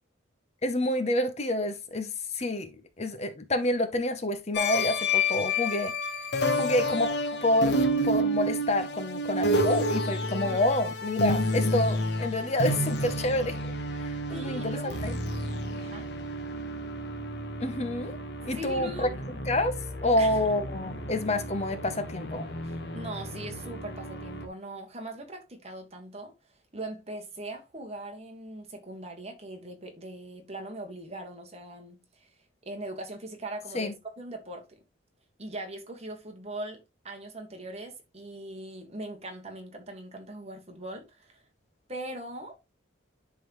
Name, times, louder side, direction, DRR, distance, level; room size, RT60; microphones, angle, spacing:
voice 1, 0.6-6.3 6.5-13.7 14.0-15.1 17.6-18.2 18.4-19.1 19.5-19.7 20.0-22.4 33.7-33.9, left 1 dB, 35° left, 0.7 m, -28 dB
sound 1, 4.5-24.5, left 1 dB, 55° left, 1.2 m, -30 dB
voice 2, 14.3-15.0 15.8-16.1 18.5-19.2 20.2-20.4 22.6-26.3 26.7-32.4 32.6-34.8 35.4-36.8 37.0-41.4 41.9-42.6, right 1 dB, 30° right, 1.6 m, -40 dB
11.0 x 3.9 x 3.0 m
head